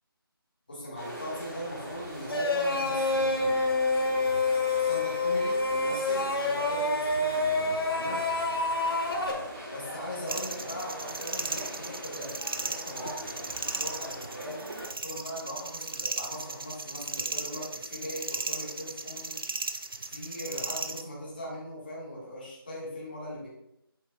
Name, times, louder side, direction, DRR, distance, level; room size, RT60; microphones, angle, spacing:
voice 1, 0.7-3.7 4.8-8.2 9.7-14.6 15.0-19.4 20.1-23.5, equal, 25° left, -5 dB, 1.6 m, -40 dB
sound 1, 0.9-14.9, equal, 15° right, 1.3 m, -42 dB
sound 2, 2.3-9.3, left 2 dB, 70° left, 1.4 m, -27 dB
sound 3, 10.3-21.0, right 3 dB, 65° right, 0.6 m, -36 dB
8.6 x 5.6 x 2.3 m, 0.81 s
figure-of-eight pair, 180°, 13 cm